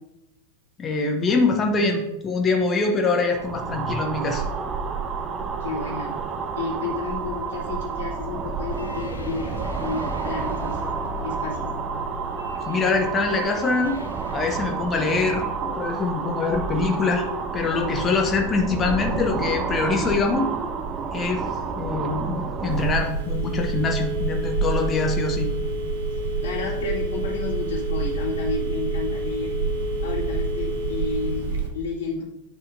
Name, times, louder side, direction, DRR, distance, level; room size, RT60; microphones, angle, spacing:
voice 1, 0.8-4.4 12.6-14.0 14.3-17.3 17.5-20.5 21.1-21.4 21.7-25.5, left 3 dB, 20° left, 2 dB, 0.9 m, -24 dB
sound 1, 3.3-23.1, right 5 dB, 25° right, 0.6 m, -30 dB
voice 2, 5.6-6.1 6.6-9.5 9.8-10.8 11.2-11.7 26.1-29.5 30.0-32.3, left 4 dB, 55° left, -8 dB, 2.3 m, -31 dB
sound 2, 8.6-15.1, left 5 dB, 75° left, 0.7 m, -40 dB
Telephone, 22.7-31.7, right 3 dB, 60° right, 1.2 m, -27 dB
9.2 x 5.5 x 2.7 m, 0.95 s
figure-of-eight pair, 90°, 0 cm